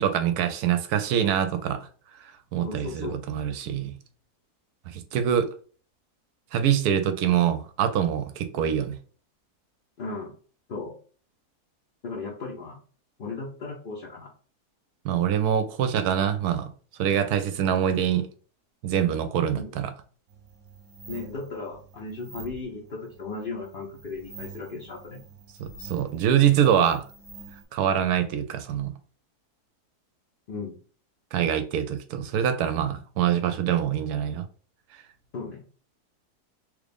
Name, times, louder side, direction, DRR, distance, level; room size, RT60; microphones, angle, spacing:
voice 1, 0.0-1.9 2.5-3.9 4.9-5.5 6.5-9.0 15.0-16.7 17.0-18.3 18.8-19.9 25.6-27.0 27.7-28.9 31.3-34.4, right 9 dB, 75° right, 1.1 m, -24 dB
voice 2, 2.6-3.2 10.0-10.3 10.7-10.9 12.0-12.8 13.2-14.3 19.5-19.7 21.1-25.2 30.5-30.8 35.3-35.6, left 3 dB, 50° left, 0.6 m, -36 dB
sound 1, 20.3-27.6, right 4 dB, 55° right, 1.1 m, -47 dB
3.3 x 2.5 x 3.4 m
omnidirectional pair, 1.7 m